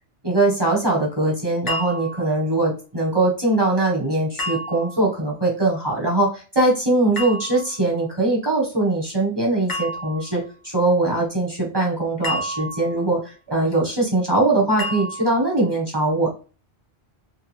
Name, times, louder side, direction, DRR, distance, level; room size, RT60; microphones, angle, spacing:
voice 1, 0.2-16.3, right 2 dB, 25° right, -3 dB, 0.8 m, -21 dB
sound 1, 1.7-2.4 4.4-5.1 7.2-7.8 9.7-10.4 12.2-13.1 14.8-15.5, equal, 40° left, 0.3 m, -30 dB
2.7 x 2.3 x 3.1 m, 0.35 s
omnidirectional pair, 1.2 m